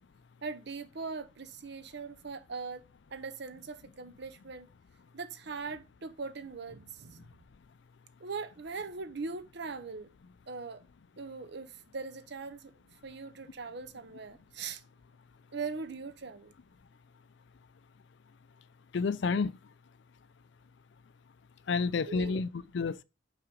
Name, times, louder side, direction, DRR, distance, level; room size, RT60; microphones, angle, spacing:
voice 1, 0.4-2.8 3.1-4.7 5.1-7.3 8.2-10.1 10.5-10.8 11.2-12.7 13.0-14.8 15.5-16.5 22.0-22.4, right 4 dB, 55° right, 0.8 m, -40 dB
voice 2, 18.9-19.6 21.7-23.0, left 4 dB, 60° left, 0.4 m, -30 dB
5.7 x 5.0 x 5.2 m
head